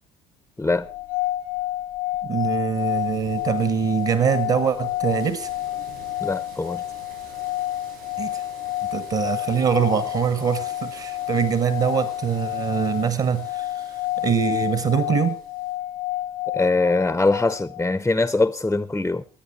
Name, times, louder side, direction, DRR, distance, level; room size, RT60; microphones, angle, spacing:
sound 1, 0.8-18.0, left 15 dB, 75° left, 0.6 m, -30 dB
voice 1, 2.2-5.5 8.2-8.4 8.9-13.8 14.2-15.4, right 7 dB, 45° right, 1.3 m, -23 dB
sound 2, 2.7-15.7, right 5 dB, 70° right, 7.2 m, -48 dB
voice 2, 6.2-6.8 16.5-19.2, left 3 dB, 10° left, 0.6 m, -22 dB
22.0 x 8.3 x 4.4 m
figure-of-eight pair, 60°, 19 cm